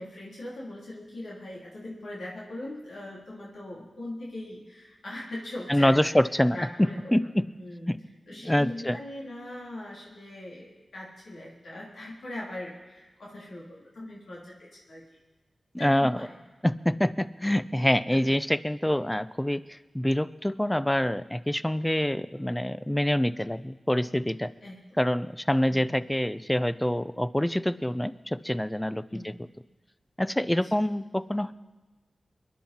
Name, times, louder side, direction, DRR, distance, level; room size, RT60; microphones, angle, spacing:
voice 1, 0.0-6.1 6.5-7.3 7.6-7.9 8.3-15.0 15.8-16.4 18.1-18.2 24.6-24.8 25.7-25.9 29.1-29.3 30.6-30.7, left 1 dB, 80° left, -5 dB, 3.3 m, -40 dB
voice 2, 5.7-6.6 7.1-7.4 7.9-8.0 8.5-9.0 15.7-16.2 16.6-24.5 25.0-29.3 30.2-31.5, left 1 dB, 10° left, 14 dB, 0.6 m, -26 dB
23.0 x 10.5 x 4.3 m, 1.2 s
cardioid pair, 45°, 0 cm